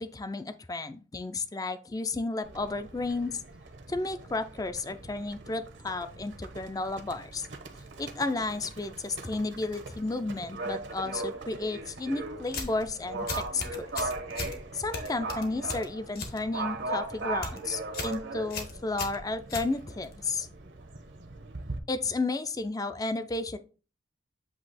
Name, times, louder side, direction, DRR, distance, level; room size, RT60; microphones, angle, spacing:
voice 1, 0.0-3.4 3.9-7.5 8.0-14.1 14.7-20.5 21.9-23.6, left 3 dB, 20° left, 11 dB, 0.4 m, -33 dB
Livestock farm animals working animals, 2.4-21.8, right 3 dB, 70° right, 0.9 m, -39 dB
sound 1, 12.5-12.9 13.3-14.6 14.9-16.4 16.7-17.0 17.3-17.6 17.9-18.2 18.5-20.1, left 3 dB, 55° left, 1.2 m, -37 dB
8.0 x 2.8 x 4.1 m, 0.35 s
head